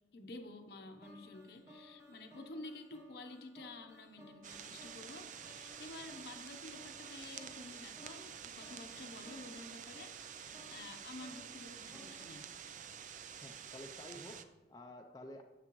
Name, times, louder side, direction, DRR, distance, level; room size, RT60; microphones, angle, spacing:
voice 1, 0.1-12.5, left 2 dB, 60° left, 7 dB, 0.8 m, -51 dB
sound 1, 1.0-13.2, equal, 15° right, 1.0 m, -60 dB
sound 2, 4.4-14.5, right 8 dB, 45° right, 0.4 m, -49 dB
voice 2, 13.4-15.4, left 1 dB, 20° left, 3 dB, 0.4 m, -51 dB
10.0 x 7.6 x 3.0 m, 1.3 s
head